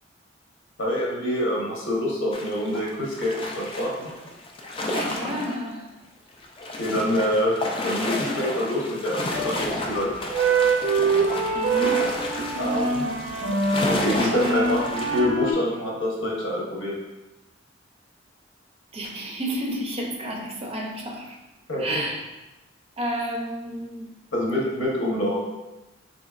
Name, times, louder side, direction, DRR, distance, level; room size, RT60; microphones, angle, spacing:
voice 1, 0.8-4.1 6.8-7.5 7.8-10.1 12.6-13.1 13.8-16.9 21.7-21.8 24.3-25.4, left 1 dB, 85° left, -4 dB, 1.0 m, -26 dB
sound 1, 2.3-5.7 5.9-6.0 6.3-15.2, left 1 dB, 30° left, 0.4 m, -31 dB
voice 2, 4.9-5.9 11.5-12.2 18.9-21.4 21.8-22.2 23.0-24.1, equal, 30° right, 0 dB, 0.5 m, -31 dB
sound 2, 9.3-9.8 10.2-15.5, right 4 dB, 90° right, 0.6 m, -24 dB
3.9 x 2.8 x 2.4 m, 1.0 s
head